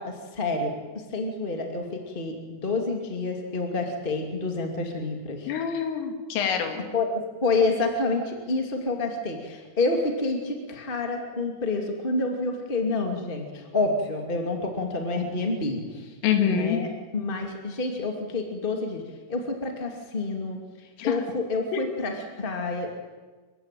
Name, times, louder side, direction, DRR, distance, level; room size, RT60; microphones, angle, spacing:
voice 1, 0.0-5.5 6.9-16.1 16.4-19.0 19.3-22.9, left 3 dB, 25° left, 3 dB, 1.2 m, -28 dB
voice 2, 5.5-6.9 16.2-16.8 21.0-21.2 21.7-21.9, left 8 dB, 85° left, 5 dB, 4.9 m, -25 dB
28.0 x 16.0 x 9.2 m, 1.4 s
omnidirectional pair, 5.6 m